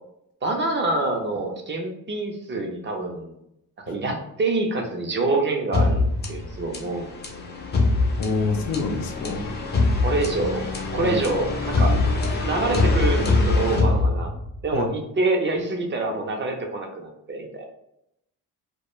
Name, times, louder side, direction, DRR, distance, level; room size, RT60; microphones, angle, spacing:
voice 1, 0.4-3.3 3.9-7.1 10.0-10.6 10.9-11.9 12.4-14.3 14.6-17.7, right 2 dB, 35° right, 2 dB, 0.5 m, -26 dB
sound 1, 5.7-14.7, left 3 dB, 30° left, 0.5 m, -23 dB
voice 2, 8.2-9.5 11.0-11.2 14.7-14.9, left 4 dB, 80° left, 3 dB, 0.5 m, -27 dB
2.2 x 2.2 x 3.0 m, 0.80 s
cardioid pair, 115°, 35 cm